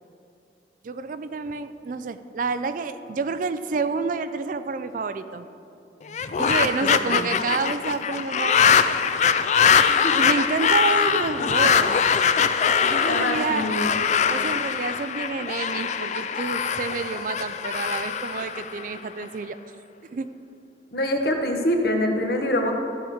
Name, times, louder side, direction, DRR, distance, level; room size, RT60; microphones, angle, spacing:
voice 1, 0.8-5.5 6.4-8.8 9.8-12.1 12.8-13.7 14.3-19.6 20.1-20.3, right 4 dB, 45° right, 11 dB, 0.3 m, -29 dB
sound 1, 6.1-19.2, left 7 dB, 40° left, 0.3 m, -22 dB
voice 2, 13.1-13.9 20.9-22.7, left 1 dB, 55° left, 3 dB, 1.1 m, -25 dB
13.5 x 4.9 x 6.4 m, 2.6 s
head